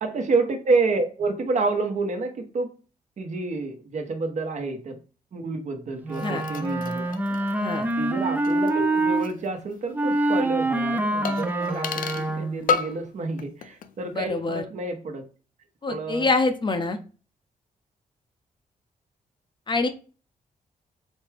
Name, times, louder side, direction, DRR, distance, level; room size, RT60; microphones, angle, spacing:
voice 1, 0.0-2.7 3.2-5.0 5.3-7.1 8.0-15.2 15.9-16.3, right 3 dB, 55° right, 4 dB, 1.0 m, -28 dB
Wind instrument woodwind instrument, 6.0-9.3 9.9-12.7, right 2 dB, 10° right, 0.5 m, -25 dB
sound 1, 6.1-9.5 9.7-9.8 11.3-12.3 12.7-13.1 13.4-13.9 14.2-14.3, left 6 dB, 70° left, 0.5 m, -33 dB
voice 2, 7.5-7.8 14.2-14.6 15.8-17.0 19.7-19.9, left 3 dB, 35° left, 7 dB, 0.6 m, -25 dB
4.2 x 3.4 x 3.3 m, 0.36 s
cardioid pair, 110°, 14 cm